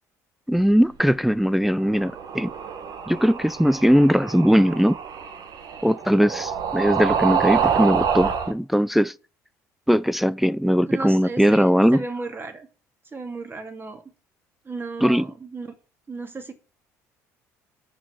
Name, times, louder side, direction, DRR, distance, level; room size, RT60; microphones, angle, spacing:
voice 1, 0.5-2.5 3.1-5.0 5.8-9.1 9.9-12.0 15.0-15.2, equal, ahead, 0.4 m, -19 dB
sound 1, 1.8-8.5, right 7 dB, 55° right, 1.6 m, -27 dB
voice 2, 10.9-12.7 13.1-14.0 14.6-15.7 16.1-16.5, right 3 dB, 25° right, 2.4 m, -34 dB
6.3 x 5.9 x 7.2 m
hypercardioid pair, 65°, 8 cm